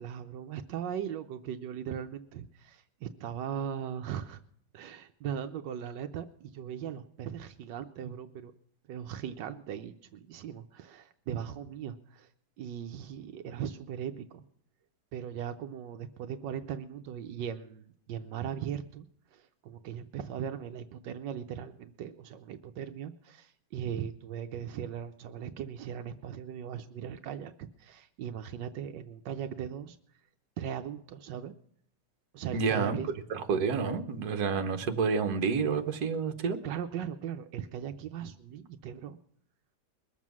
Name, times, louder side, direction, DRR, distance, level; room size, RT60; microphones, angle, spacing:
voice 1, 0.0-4.4 4.7-8.5 8.9-12.3 12.6-14.4 15.1-30.0 30.6-31.5 32.3-33.1 36.6-39.2, right 9 dB, 85° right, 7 dB, 1.4 m, -39 dB
voice 2, 32.5-33.0 33.3-36.6, right 5 dB, 65° right, 6 dB, 1.6 m, -29 dB
21.5 x 7.5 x 6.1 m, 0.64 s
omnidirectional pair, 1.9 m